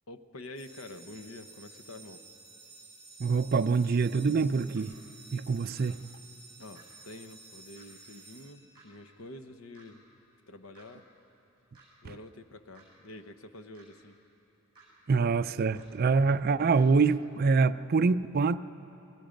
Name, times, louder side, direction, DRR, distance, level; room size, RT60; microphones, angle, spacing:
voice 1, 0.1-2.2 6.6-10.0 10.5-11.1 12.0-14.2, left 2 dB, 75° left, 9 dB, 1.0 m, -47 dB
sound 1, 0.6-9.2, right 3 dB, 30° left, 3.0 m, -53 dB
voice 2, 3.2-4.9 5.3-6.0 15.1-18.6, right 4 dB, 45° right, 14 dB, 0.4 m, -25 dB
sound 2, 4.8-4.9 5.7-5.9 6.8-6.9 7.8-7.9 8.8-8.9 9.7-9.9 10.8-10.9 11.7-11.9 12.8-12.9 13.7-13.9 14.8-14.9 15.8-15.9 16.8-16.9, right 4 dB, 25° right, 6.9 m, -57 dB
29.0 x 21.0 x 5.2 m, 3.0 s
head